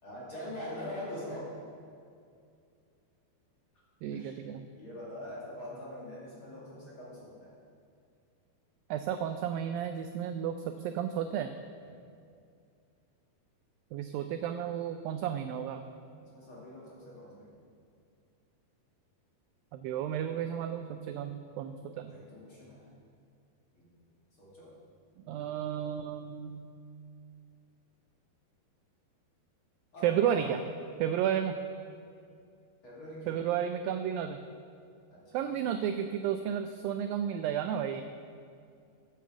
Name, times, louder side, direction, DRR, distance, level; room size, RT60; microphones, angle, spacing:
voice 1, 0.0-1.6 4.1-4.4 4.7-7.6 11.8-12.0 16.2-17.6 22.1-22.9 23.7-23.9 24.4-24.8 29.9-30.7 32.8-33.4 35.1-35.6, left 1 dB, 40° left, -6 dB, 2.4 m, -43 dB
voice 2, 4.0-4.7 8.9-11.5 13.9-15.8 19.7-22.1 25.3-26.7 30.0-30.6 31.0-31.6 33.3-34.4 35.3-38.0, right 9 dB, 85° right, 8 dB, 2.0 m, -32 dB
9.3 x 8.4 x 7.2 m, 2.4 s
omnidirectional pair, 4.5 m